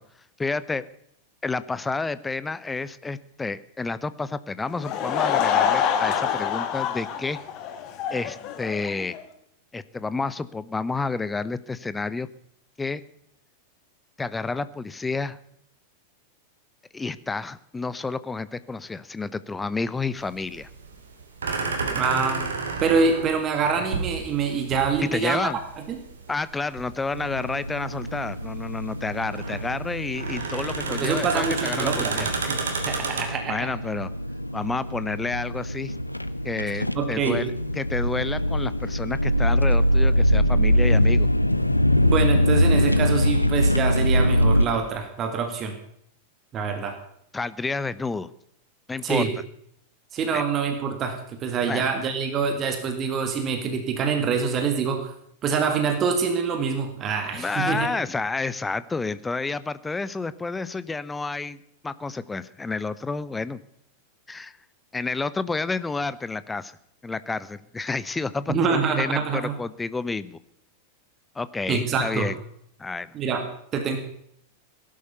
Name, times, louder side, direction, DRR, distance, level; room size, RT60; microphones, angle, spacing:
voice 1, 0.4-0.8 1.4-7.4 8.1-9.2 9.7-12.3 12.8-13.0 14.2-15.4 16.9-20.7 25.0-25.6 26.3-32.3 33.3-34.1 34.5-35.9 36.4-41.3 47.3-48.3 48.9-49.3 50.3-50.4 51.7-51.9 57.3-63.6 64.3-64.5 64.9-66.7 67.0-70.4 71.3-72.4 72.8-73.1, left 3 dB, 10° left, 16 dB, 0.8 m, -30 dB
Laughter / Crowd, 4.7-9.2, left 8 dB, 40° left, 2.0 m, -26 dB
sound 1, 20.2-33.2, right 4 dB, 70° right, 2.8 m, -32 dB
voice 2, 21.9-22.5 22.8-25.4 25.9-26.0 30.9-33.7 37.0-37.4 42.0-45.7 46.5-47.0 49.0-49.3 50.1-55.1 55.4-57.9 68.5-69.5 71.7-72.3 73.1-73.5 73.7-74.0, right 5 dB, 30° right, 7 dB, 2.1 m, -25 dB
sound 2, 27.1-44.6, equal, 85° left, 0.7 m, -23 dB
18.0 x 11.5 x 6.9 m, 0.72 s
figure-of-eight pair, 90°, 0 cm